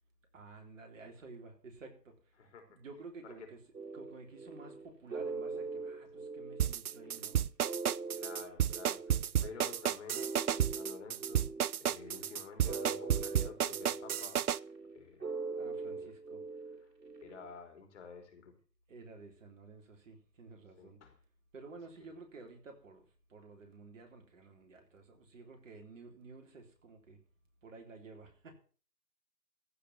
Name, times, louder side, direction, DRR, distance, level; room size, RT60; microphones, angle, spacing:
voice 1, 0.3-2.1 2.7-3.6 3.9-7.4 9.4-9.5 15.5-16.4 18.9-21.0 21.5-27.2 27.6-28.5, right 3 dB, 50° right, 3 dB, 3.7 m, -52 dB
sound 1, 3.7-17.5, right 4 dB, 80° right, 3.4 m, -43 dB
sound 2, 6.6-14.6, right 10 dB, 65° right, 0.6 m, -31 dB
voice 2, 8.2-14.4 14.9-15.3 15.8-16.1 16.8-16.9 17.2-18.5 20.8-21.2, left 5 dB, 45° left, 5 dB, 3.8 m, -51 dB
15.0 x 5.2 x 9.6 m, 0.41 s
figure-of-eight pair, 145°, 50 cm